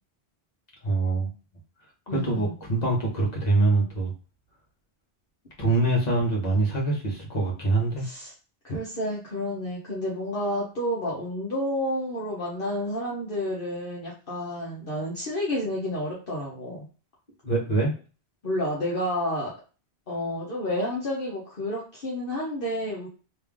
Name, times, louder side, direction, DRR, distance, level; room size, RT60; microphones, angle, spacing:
voice 1, 0.8-1.3 2.1-4.1 5.6-8.1 17.4-17.9, right 2 dB, 40° left, -3 dB, 1.4 m, -24 dB
voice 2, 2.1-2.5 8.0-8.3 8.6-16.9 18.4-19.6 20.1-23.1, left 1 dB, 55° left, -4 dB, 1.2 m, -30 dB
3.3 x 2.9 x 3.5 m, 0.35 s
omnidirectional pair, 1.1 m